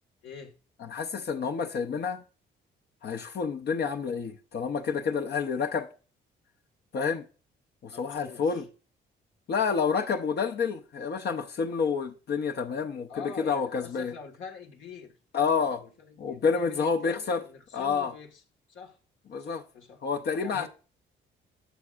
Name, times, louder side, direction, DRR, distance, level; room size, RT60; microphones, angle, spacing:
voice 1, 0.2-0.5 7.9-8.7 13.1-18.4 18.7-19.0 19.4-20.0 20.4-20.7, left 5 dB, 75° left, 1.7 m, -46 dB
voice 2, 0.9-2.2 3.0-5.9 6.9-7.2 7.8-8.7 9.5-13.1 13.4-14.1 15.3-15.8 16.2-17.4 17.7-18.1 19.3-19.6 20.0-20.7, left 5 dB, 55° left, 0.8 m, -29 dB
11.5 x 6.3 x 2.5 m
cardioid pair, 90°, 20 cm